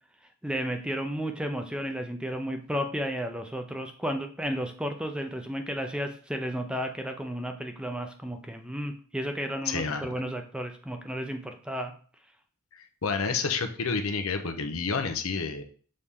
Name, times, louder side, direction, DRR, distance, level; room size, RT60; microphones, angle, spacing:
voice 1, 0.4-11.9, equal, 5° right, 5 dB, 0.5 m, -33 dB
voice 2, 9.6-10.1 12.7-15.6, left 5 dB, 80° left, 8 dB, 0.8 m, -29 dB
6.5 x 4.2 x 3.7 m, 0.43 s
head